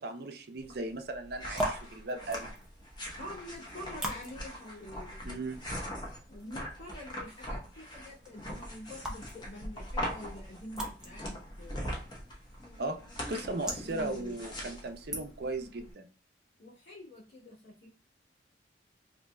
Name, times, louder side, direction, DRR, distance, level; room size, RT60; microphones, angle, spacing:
voice 1, 0.0-2.5 5.2-5.6 12.8-13.0 13.3-16.1, right 2 dB, 55° right, 0.6 m, -37 dB
sound 1, 0.6-15.9, equal, 25° left, 0.9 m, -41 dB
sound 2, 1.3-15.7, right 1 dB, 5° right, 0.7 m, -44 dB
voice 2, 3.2-5.4 6.3-12.2 13.3-14.4 16.6-17.9, left 1 dB, 60° left, 1.9 m, -47 dB
4.1 x 2.8 x 2.2 m
head